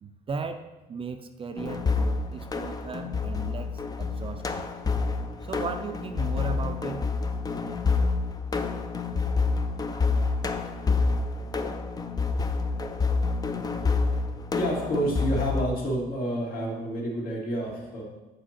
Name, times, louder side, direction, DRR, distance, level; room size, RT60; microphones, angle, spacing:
voice 1, 0.0-4.7 5.4-7.1, right 5 dB, 30° right, 7 dB, 0.5 m, -36 dB
sound 1, 1.6-15.6, left 4 dB, 20° left, 0.5 m, -28 dB
voice 2, 14.5-18.0, right 1 dB, 60° left, -3 dB, 2.3 m, -29 dB
7.6 x 4.6 x 4.3 m, 1.1 s
cardioid pair, 110°, 17 cm